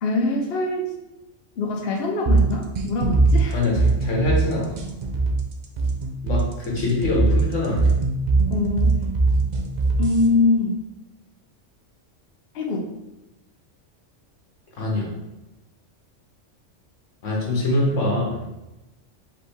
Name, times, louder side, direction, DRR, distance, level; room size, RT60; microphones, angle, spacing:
voice 1, 0.0-0.9 1.6-3.6 8.5-9.0 10.0-10.8 12.5-12.9, left 3 dB, 60° left, 0 dB, 0.8 m, -23 dB
sound 1, 2.3-10.3, right 3 dB, 50° right, 0.5 m, -21 dB
voice 2, 3.5-4.8 6.2-7.9 14.8-15.1 17.2-18.4, left 2 dB, 80° left, -2 dB, 1.6 m, -24 dB
5.0 x 3.0 x 3.4 m, 0.99 s
omnidirectional pair, 1.3 m